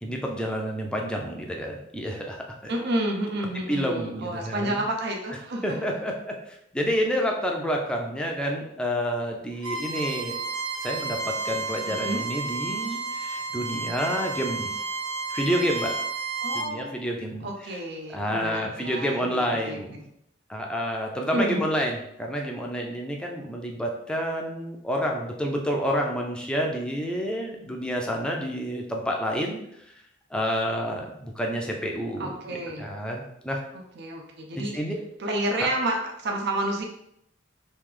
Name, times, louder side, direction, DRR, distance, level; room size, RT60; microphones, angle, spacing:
voice 1, 0.0-2.7 3.7-4.8 5.6-10.4 10.8-14.7 15.3-16.0 16.5-17.8 18.1-20.0 20.5-29.9 30.3-32.4 32.8-33.6 34.5-35.0, equal, 5° left, 0 dB, 0.5 m, -29 dB
voice 2, 2.7-5.8 11.8-12.2 16.4-17.0 17.4-20.1 21.3-21.7 32.2-32.9 34.0-34.7 35.2-36.8, right 1 dB, 55° right, 1 dB, 0.6 m, -30 dB
Bowed string instrument, 9.6-16.7, right 3 dB, 85° right, 0.9 m, -31 dB
3.1 x 2.9 x 3.7 m, 0.77 s
head